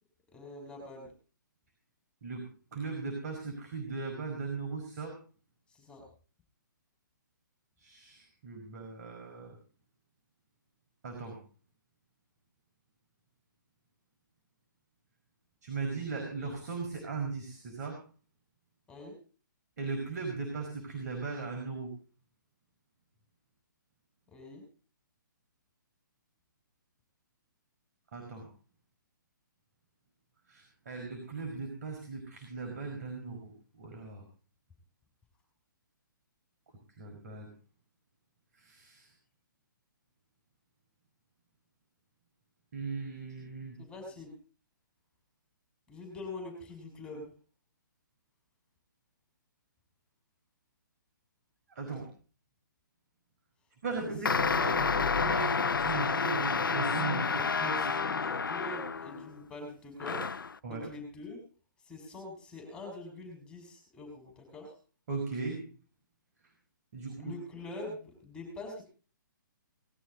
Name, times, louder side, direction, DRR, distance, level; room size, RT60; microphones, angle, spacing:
voice 1, 0.3-1.1 5.7-6.0 18.9-19.2 24.3-24.6 43.8-44.3 45.9-47.3 54.0-54.7 57.2-60.4 60.6-61.4 61.8-64.7 67.2-68.8, left 2 dB, 10° left, 1 dB, 6.1 m, -44 dB
voice 2, 2.2-5.2 7.8-9.6 11.0-11.4 15.6-18.0 19.8-21.9 28.1-28.5 30.5-34.2 37.0-37.5 38.5-39.1 42.7-43.8 51.7-52.1 53.8-57.9 60.6-60.9 65.1-65.7 66.9-67.3, right 4 dB, 55° right, 3 dB, 5.2 m, -38 dB
sound 1, 54.2-59.3 60.0-60.5, left 5 dB, 85° left, 0.6 m, -30 dB
20.0 x 13.5 x 4.0 m, 0.40 s
hypercardioid pair, 140°, 11 cm